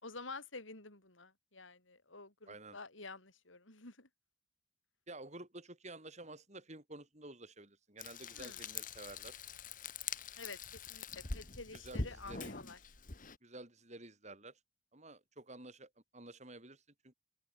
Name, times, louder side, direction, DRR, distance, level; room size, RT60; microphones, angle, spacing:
voice 1, 0.0-4.1 8.4-8.6 10.4-10.6 10.9-12.8, left 3 dB, 85° left, 5.5 m, -50 dB
voice 2, 2.5-2.8 5.1-9.4 11.7-12.5 13.4-14.6 14.9-17.1, right 2 dB, 35° right, 6.2 m, -51 dB
Frying (food), 8.0-13.4, left 4 dB, 45° left, 2.0 m, -44 dB
open air
head